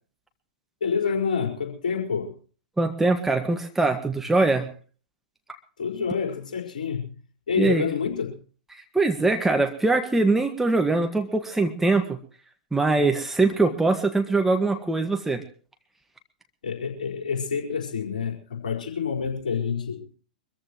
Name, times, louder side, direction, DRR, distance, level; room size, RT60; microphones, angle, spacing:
voice 1, 0.8-2.4 5.8-7.1 7.5-8.4 16.6-20.1, left 6 dB, 60° left, 2 dB, 4.9 m, -28 dB
voice 2, 2.8-4.7 7.6-7.8 8.7-12.2 12.7-15.4, right 3 dB, 5° right, 5 dB, 1.7 m, -22 dB
24.5 x 14.5 x 3.1 m, 0.40 s
figure-of-eight pair, 100°, 5 cm